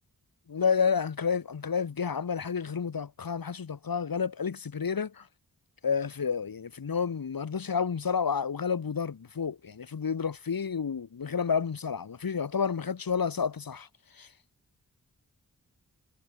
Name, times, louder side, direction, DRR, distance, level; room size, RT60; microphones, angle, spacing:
voice 1, 0.5-5.3 5.8-13.9 14.2-14.3, left 6 dB, 80° left, 5.7 m, -30 dB
wide cardioid pair, 95°, 34 cm